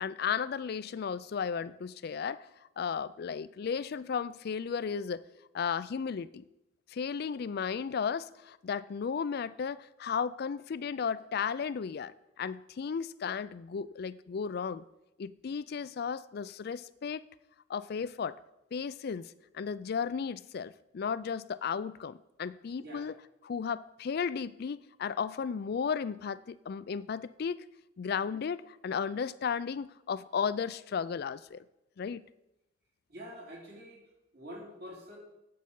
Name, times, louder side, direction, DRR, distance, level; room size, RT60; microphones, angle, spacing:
voice 1, 0.0-2.5 2.8-5.2 5.5-6.4 6.9-14.8 15.2-17.2 17.7-18.4 18.7-27.6 28.0-31.6 32.0-32.2, left 6 dB, 55° left, 0.4 m, -34 dB
voice 2, 33.1-34.0 34.3-35.2, equal, 55° right, 3.0 m, -46 dB
8.6 x 7.8 x 5.4 m
head